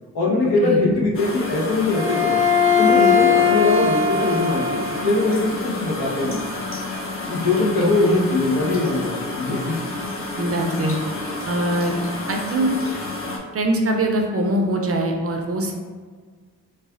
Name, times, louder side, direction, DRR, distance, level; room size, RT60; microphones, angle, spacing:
voice 1, 0.1-2.4 2.8-6.5 7.3-9.7, left 2 dB, 65° left, -4 dB, 1.0 m, -21 dB
sound 1, 1.1-13.4, left 2 dB, 35° left, 0.7 m, -30 dB
Bowed string instrument, 1.9-5.3, left 6 dB, 85° right, 0.8 m, -19 dB
voice 2, 7.8-8.2 10.4-11.0 11.4-11.9 12.3-12.7 13.5-15.7, right 1 dB, 35° right, 2 dB, 0.5 m, -23 dB
4.0 x 2.3 x 2.4 m, 1.5 s
supercardioid pair, 50°, 40 cm